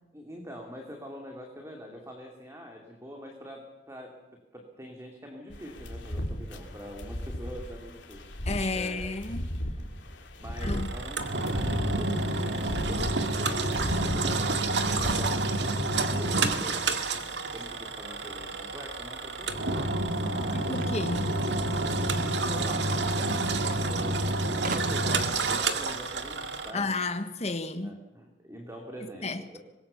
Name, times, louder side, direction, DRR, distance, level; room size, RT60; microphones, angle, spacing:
voice 1, 0.1-4.2 4.5-8.2 8.7-9.1 9.8-9.9 10.4-11.2 11.5-19.6 20.2-20.8 22.0-23.3 23.7-27.0 27.8-29.6, equal, 15° right, 2.8 m, -44 dB
sound 1, 5.5-15.1, equal, 80° left, 2.9 m, -36 dB
voice 2, 8.4-9.4 10.6-10.9 20.5-21.4 26.7-28.0 29.2-29.4, left 3 dB, 35° left, 1.4 m, -32 dB
Engine, 10.6-26.7, right 2 dB, 70° right, 2.0 m, -29 dB
sound 2, 20.7-22.1 23.2-23.3 23.6-23.7 24.6-25.3, right 4 dB, 50° right, 1.6 m, -40 dB
25.0 x 21.0 x 7.0 m
head